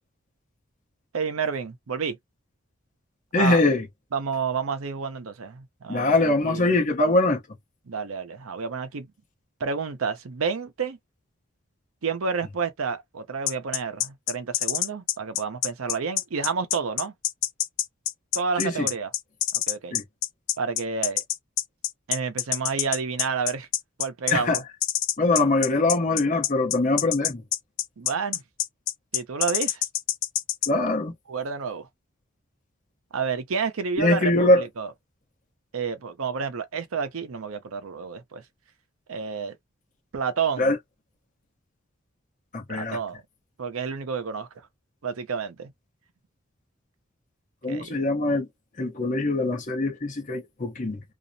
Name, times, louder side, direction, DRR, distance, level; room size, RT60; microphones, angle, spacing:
voice 1, 1.1-2.2 3.4-3.6 4.1-6.7 7.9-9.1 9.6-11.0 12.0-17.1 18.3-19.1 19.7-20.0 20.6-21.2 22.1-23.7 24.0-24.6 28.0-28.4 29.1-29.8 31.3-31.9 33.1-34.9 35.7-38.4 39.1-39.6 40.1-40.7 42.7-43.2 43.6-44.5 45.0-45.7 47.7-48.1, right 5 dB, 90° right, 0.6 m, -30 dB
voice 2, 3.3-3.9 5.9-7.4 18.6-18.9 19.9-20.0 24.3-24.6 25.2-27.4 30.7-31.1 34.0-34.6 40.6-40.8 42.5-43.0 47.6-48.5 48.8-51.0, left 2 dB, 40° left, 0.7 m, -22 dB
sound 1, 13.5-30.7, left 13 dB, 70° left, 0.4 m, -26 dB
2.4 x 2.0 x 2.6 m
head